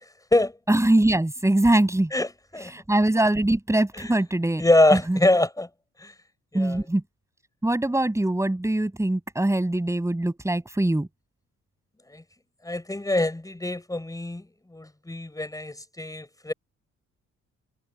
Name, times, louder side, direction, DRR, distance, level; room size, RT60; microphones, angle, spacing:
voice 1, 0.7-2.1 2.7-4.6 4.9-5.2 6.5-7.0 7.6-11.1, right 1 dB, 10° right, 7.0 m, -22 dB
voice 2, 2.1-2.7 4.0-4.1 4.6-5.7 6.0-6.1 6.5-6.8 12.1-12.2 12.6-14.4 14.7-16.5, left 1 dB, 10° left, 4.4 m, -24 dB
cardioid pair, 90°, 30 cm